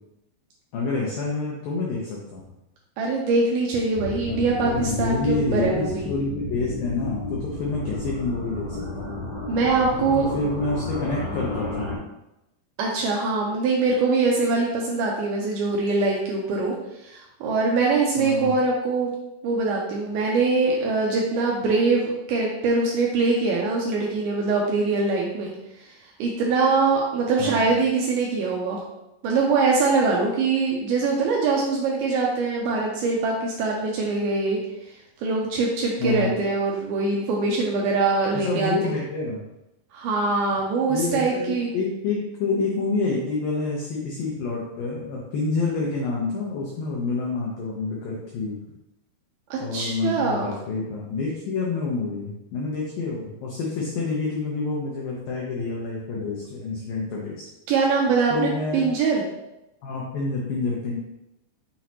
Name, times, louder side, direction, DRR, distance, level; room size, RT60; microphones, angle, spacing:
voice 1, 0.7-2.4 4.3-9.1 10.0-11.9 18.2-18.6 27.4-27.6 36.0-36.3 38.3-39.4 40.9-48.6 49.6-57.4 58.3-58.9 59.8-61.0, left 3 dB, 80° left, -3 dB, 2.1 m, -28 dB
voice 2, 3.0-6.1 9.5-10.3 12.8-16.8 17.0-19.1 19.4-25.5 25.8-25.9 26.2-28.8 29.2-34.6 35.2-38.9 39.9-41.7 49.5-50.5 57.7-59.3, right 3 dB, 90° right, -2 dB, 2.2 m, -23 dB
sound 1, 3.9-12.0, left 2 dB, 50° left, 2.8 m, -32 dB
6.2 x 6.0 x 2.9 m, 0.90 s
omnidirectional pair, 5.3 m